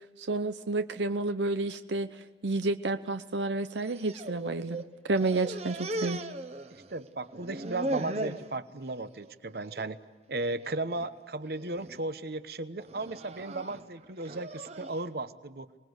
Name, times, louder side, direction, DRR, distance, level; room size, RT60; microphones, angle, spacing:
voice 1, 0.2-2.1 2.4-6.2, right 2 dB, 85° right, 9 dB, 0.8 m, -30 dB
sound 1, 3.8-4.9 5.2-7.0 7.3-8.5 9.0-9.3 9.7-9.8 10.7-11.1 11.6-12.0 12.8-15.0, right 2 dB, 35° right, 1.0 m, -38 dB
voice 2, 6.9-10.0 10.3-15.7, right 2 dB, 60° right, 12 dB, 1.0 m, -35 dB
25.5 x 20.5 x 8.1 m, 1.2 s
head